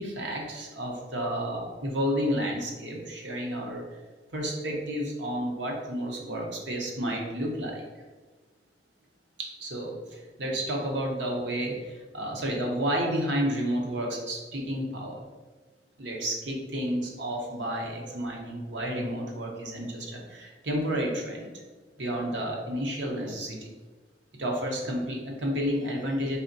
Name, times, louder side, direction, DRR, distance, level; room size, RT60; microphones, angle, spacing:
voice 1, 0.0-3.8 4.3-7.8 9.4-15.2 16.0-21.5 22.0-23.7 24.4-26.4, equal, 90° right, 0 dB, 0.8 m, -31 dB
4.2 x 3.3 x 2.7 m, 1.3 s
head